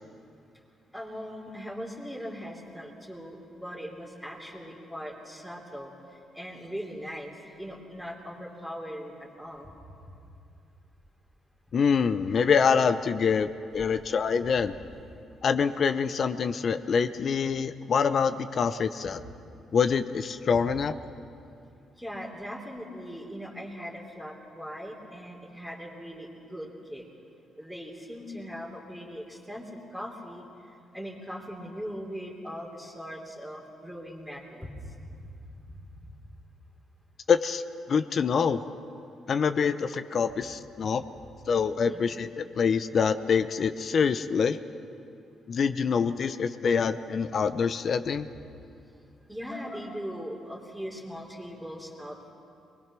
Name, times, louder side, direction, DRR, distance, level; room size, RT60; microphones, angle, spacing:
voice 1, 0.9-9.7 10.0-10.1 13.7-14.0 19.0-19.1 20.5-20.6 22.0-27.1 27.6-30.5 30.9-35.8 41.7-42.1 49.3-52.3, equal, ahead, -1 dB, 3.2 m, -40 dB
voice 2, 11.7-14.7 15.4-19.2 19.7-20.9 37.3-37.6 37.9-38.7 39.3-41.0 41.5-44.6 45.5-48.3, left 6 dB, 50° left, 12 dB, 0.7 m, -25 dB
23.5 x 21.0 x 6.1 m, 2.5 s
cardioid pair, 90°, 0 cm